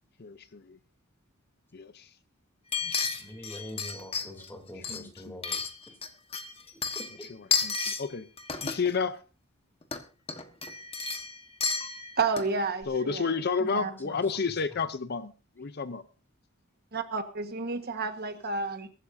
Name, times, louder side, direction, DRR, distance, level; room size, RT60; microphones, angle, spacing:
voice 1, 0.2-0.8 1.7-2.1 4.9-5.4 7.6-8.3 8.6-9.2 12.9-16.0, left 5 dB, 50° left, 0.7 m, -31 dB
sound 1, 2.7-4.5 4.8-6.1 6.3-8.0 8.4-8.9 9.8-10.0 10.3-12.6 12.8-12.9, left 5 dB, 30° left, 1.4 m, -32 dB
voice 2, 2.8-5.6 6.9-7.3 13.6-14.2 14.7-14.8, left 1 dB, 10° left, 3.0 m, -44 dB
voice 3, 12.2-13.4 13.7-13.9 16.9-18.9, right 4 dB, 50° right, 1.5 m, -31 dB
23.0 x 12.0 x 2.7 m
head